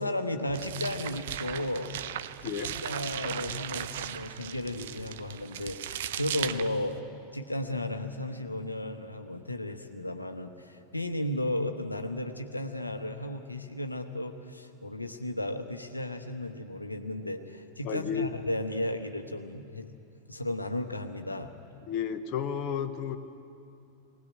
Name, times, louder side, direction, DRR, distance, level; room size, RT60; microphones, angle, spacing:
voice 1, 0.0-1.9 2.4-7.0 7.3-19.9 20.3-21.5, left 1 dB, 85° left, 6 dB, 1.0 m, -34 dB
sound 1, 0.5-7.0, right 11 dB, 55° right, 0.7 m, -37 dB
voice 2, 17.8-18.3 21.9-23.2, left 8 dB, 40° left, 7 dB, 1.1 m, -32 dB
20.5 x 18.0 x 8.6 m, 2.6 s
figure-of-eight pair, 90°, 0 cm